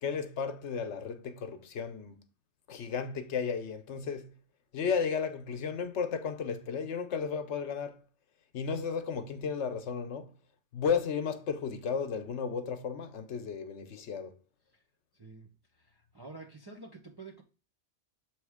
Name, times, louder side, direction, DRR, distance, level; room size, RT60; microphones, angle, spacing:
voice 1, 0.0-2.2 2.7-4.3 4.7-8.0 8.5-10.3 10.7-14.3, left 6 dB, 80° left, 1.1 m, -34 dB
voice 2, 15.1-17.4, right 3 dB, 25° right, 0.6 m, -49 dB
7.0 x 3.1 x 4.8 m
omnidirectional pair, 1.2 m